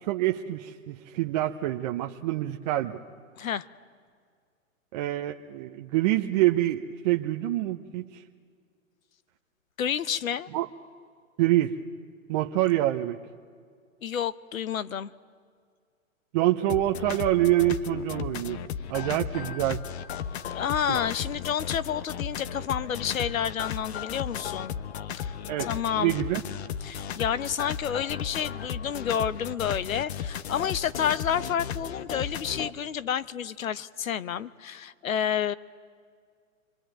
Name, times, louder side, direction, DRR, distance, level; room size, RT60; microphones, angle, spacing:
voice 1, 0.0-3.0 4.9-8.2 10.5-10.7 11.4-11.7 12.3-13.2 16.3-18.6 18.9-19.8 25.5-25.7 25.9-26.4, right 15 dB, 30° right, 2 dB, 0.8 m, -26 dB
voice 2, 9.8-10.5 14.0-15.1 20.5-24.7 25.1-26.2 26.8-35.5, left 8 dB, 80° left, 17 dB, 1.0 m, -30 dB
sound 1, 16.7-32.7, left 8 dB, 50° left, 1.2 m, -35 dB
27.5 x 23.5 x 9.1 m, 2.1 s
hypercardioid pair, 140°, 41 cm